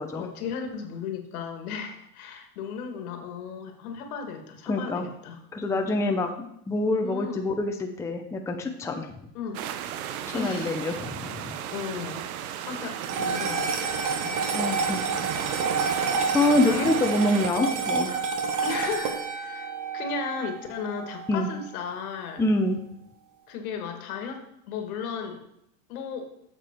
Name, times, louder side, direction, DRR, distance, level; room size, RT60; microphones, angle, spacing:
voice 1, 0.1-6.2 7.0-7.5 9.3-9.6 10.3-10.7 11.7-12.3 12.6-14.7 15.2-15.6 16.6-16.9 18.6-19.7 19.9-22.4 23.5-25.4 25.9-26.3, left 6 dB, 75° left, 4 dB, 2.0 m, -35 dB
voice 2, 4.7-5.0 5.5-9.1 10.3-11.6 14.5-15.6 16.3-18.1 21.3-21.5 22.4-22.8, left 2 dB, 5° left, 3 dB, 0.7 m, -26 dB
sound 1, 9.5-17.5, right 10 dB, 75° right, 0.9 m, -35 dB
sound 2, 13.0-21.5, right 5 dB, 40° right, 1.3 m, -29 dB
8.3 x 6.8 x 4.5 m, 0.77 s
supercardioid pair, 125°, 44 cm